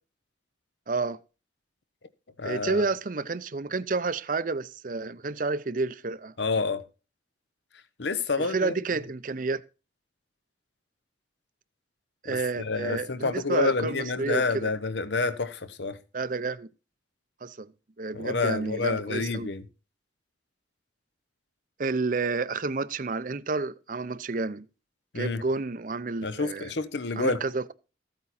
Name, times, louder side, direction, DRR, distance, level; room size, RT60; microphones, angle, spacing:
voice 1, 0.9-1.2 2.4-6.3 8.4-9.6 12.2-14.7 16.1-16.7 17.4-17.7 18.0-19.5 21.8-24.7 25.1-26.7 27.2-27.7, right 3 dB, 45° right, 0.6 m, -30 dB
voice 2, 2.4-2.8 6.4-6.8 8.0-8.8 12.2-16.0 18.1-19.6 25.1-25.4 26.2-27.4, left 3 dB, 75° left, 0.9 m, -28 dB
14.5 x 8.7 x 4.2 m
head